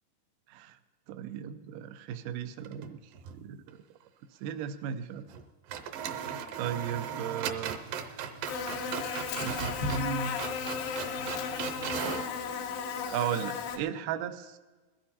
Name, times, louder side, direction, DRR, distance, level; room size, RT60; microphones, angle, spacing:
voice 1, 0.5-0.8 1.1-3.8 4.3-5.3 5.8-5.9 6.6-7.8 9.4-10.4 13.1-14.6, right 9 dB, 90° right, 9 dB, 1.9 m, -36 dB
sound 1, 2.6-3.4 3.7-3.8 5.3-5.4 5.7-12.3, right 7 dB, 75° right, 2.2 m, -38 dB
Buzz, 8.5-13.8, left 6 dB, 85° left, 3.1 m, -34 dB
21.5 x 14.5 x 2.8 m, 1.3 s
omnidirectional pair, 4.6 m